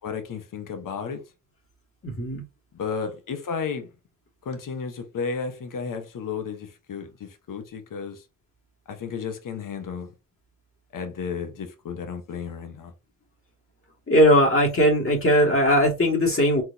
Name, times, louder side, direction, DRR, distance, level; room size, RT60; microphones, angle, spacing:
voice 1, 0.0-1.2 2.7-3.9 4.4-8.2 8.9-10.1 10.9-12.9, left 5 dB, 70° left, 1.3 m, -33 dB
voice 2, 2.0-2.4 14.1-16.6, equal, 40° left, 2.2 m, -19 dB
4.5 x 4.1 x 2.8 m
cardioid pair, 75°, 33 cm